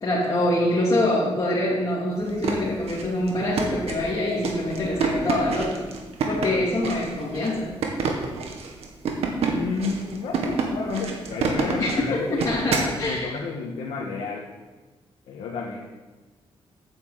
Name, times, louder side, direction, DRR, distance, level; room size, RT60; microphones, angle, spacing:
voice 1, 0.0-5.8 6.3-7.7 11.8-13.4, left 1 dB, 40° left, -6 dB, 2.9 m, -25 dB
sound 1, 2.2-13.0, right 5 dB, 80° right, 1.8 m, -28 dB
voice 2, 9.5-14.5 15.3-15.8, left 4 dB, 90° left, -2 dB, 1.5 m, -31 dB
8.9 x 7.4 x 7.9 m, 1.2 s
cardioid pair, 85°, 10 cm